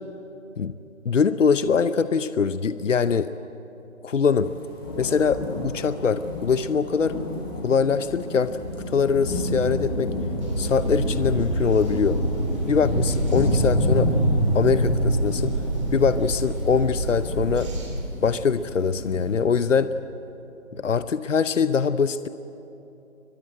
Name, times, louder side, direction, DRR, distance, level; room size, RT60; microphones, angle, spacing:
voice 1, 1.0-3.3 4.0-4.5 5.0-7.2 7.6-8.6 8.9-10.1 10.6-12.2 12.7-14.1 14.5-15.6 15.9-17.7 18.2-19.9 20.7-22.3, left 6 dB, 70° left, 13 dB, 0.9 m, -23 dB
sound 1, 4.4-19.3, equal, 20° left, 3.8 m, -28 dB
sound 2, 10.4-17.9, right 2 dB, 25° right, 3.6 m, -30 dB
22.5 x 22.0 x 9.0 m, 2.9 s
figure-of-eight pair, 175°, 39 cm